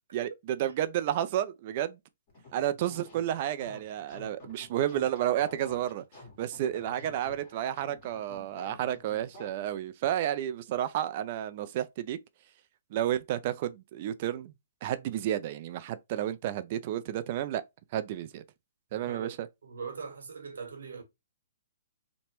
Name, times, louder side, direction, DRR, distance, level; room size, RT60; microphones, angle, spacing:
voice 1, 0.1-2.0 2.5-6.0 6.4-12.2 12.9-14.5 14.8-17.6 17.9-18.4 18.9-19.4, right 11 dB, 40° right, 0.3 m, -31 dB
sound 1, 2.3-9.5, left 2 dB, 35° left, 1.5 m, -50 dB
voice 2, 18.9-21.0, right 5 dB, 85° right, 1.0 m, -41 dB
3.0 x 2.1 x 2.9 m
hypercardioid pair, 150°, 0 cm